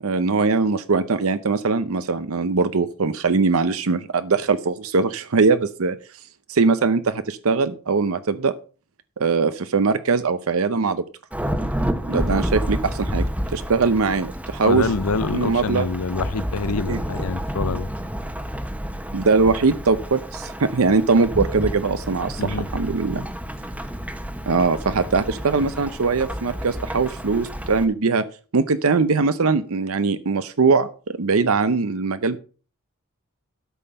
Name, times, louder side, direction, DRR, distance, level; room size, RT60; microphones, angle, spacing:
voice 1, 0.0-6.0 6.5-8.5 9.2-11.0 12.1-13.3 13.5-14.9 15.3-15.9 16.9-17.0 19.1-23.3 24.5-28.2 28.5-32.4, right 4 dB, 70° right, 0.7 m, -21 dB
Thunderstorm / Rain, 11.3-27.8, equal, 5° right, 1.0 m, -30 dB
voice 2, 14.6-17.9 22.4-22.7, left 4 dB, 85° left, 0.7 m, -26 dB
12.5 x 5.6 x 6.7 m
head